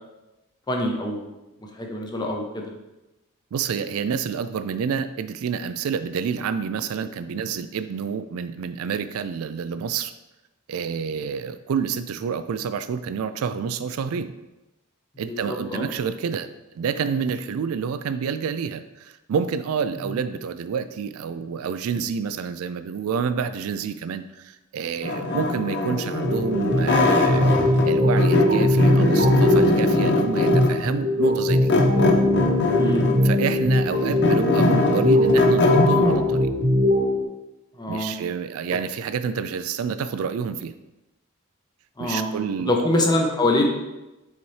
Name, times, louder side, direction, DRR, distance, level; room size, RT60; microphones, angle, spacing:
voice 1, 0.7-1.3 1.8-2.6 15.3-15.9 25.2-25.4 32.7-33.1 37.8-38.1 42.0-42.3 42.6-43.7, left 1 dB, 20° left, 1 dB, 0.8 m, -24 dB
voice 2, 3.5-10.1 10.7-14.3 15.2-27.5 27.8-31.7 33.2-36.5 37.9-40.7 42.0-42.9, right 6 dB, 85° right, 12 dB, 0.3 m, -28 dB
sound 1, 25.0-27.9 28.2-30.9 31.7-33.3 33.7-36.2, left 2 dB, 55° left, 0.7 m, -22 dB
sound 2, 26.2-37.2, left 1 dB, 40° right, 0.8 m, -20 dB
7.2 x 4.1 x 3.2 m, 1.0 s
head